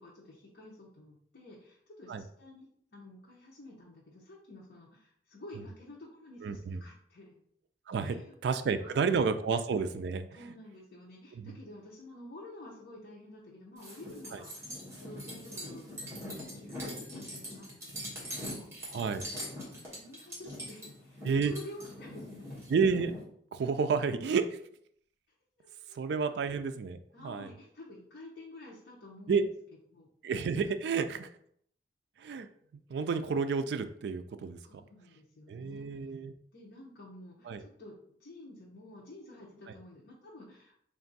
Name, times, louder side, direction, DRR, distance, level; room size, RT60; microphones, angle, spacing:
voice 1, 0.0-7.4 8.0-8.4 8.8-9.2 10.3-19.0 19.6-22.7 25.6-26.4 27.1-29.5 29.9-30.1 34.6-36.0 36.5-40.7, left 1 dB, 70° left, -5 dB, 0.8 m, -51 dB
voice 2, 6.4-6.8 7.9-8.2 8.4-10.3 11.4-11.5 18.9-19.2 21.2-21.5 22.7-23.1 23.5-24.6 26.0-27.5 29.3-29.5 30.2-31.3 32.2-32.5 32.9-34.6 35.5-36.3 37.5-37.6, right 5 dB, 65° right, 9 dB, 0.3 m, -30 dB
sound 1, 13.8-23.2, equal, 15° right, 1.2 m, -42 dB
3.4 x 2.6 x 3.9 m, 0.66 s
head